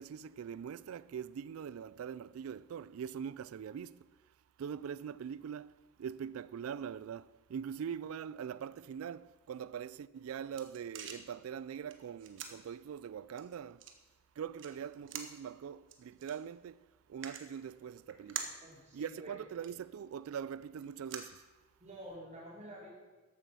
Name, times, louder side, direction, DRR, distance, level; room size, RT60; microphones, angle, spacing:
voice 1, 0.0-4.1 4.6-13.8 14.4-18.5 18.9-21.4, right 8 dB, 85° right, 0.3 m, -43 dB
sound 1, 10.0-22.1, right 7 dB, 60° right, 1.2 m, -49 dB
voice 2, 18.6-19.4 21.8-22.9, equal, 35° right, 3.4 m, -49 dB
13.5 x 8.3 x 6.1 m
head